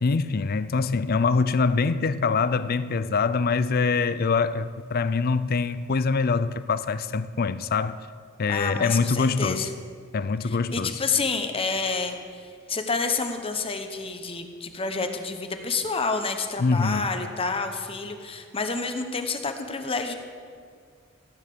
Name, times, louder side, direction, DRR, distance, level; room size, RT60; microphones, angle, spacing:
voice 1, 0.0-8.0 8.4-9.7 10.1-11.0 16.6-17.1, left 4 dB, 50° left, 0.5 m, -24 dB
voice 2, 8.5-9.7 10.4-20.1, left 4 dB, 30° left, 0.9 m, -29 dB
15.0 x 8.9 x 6.9 m
head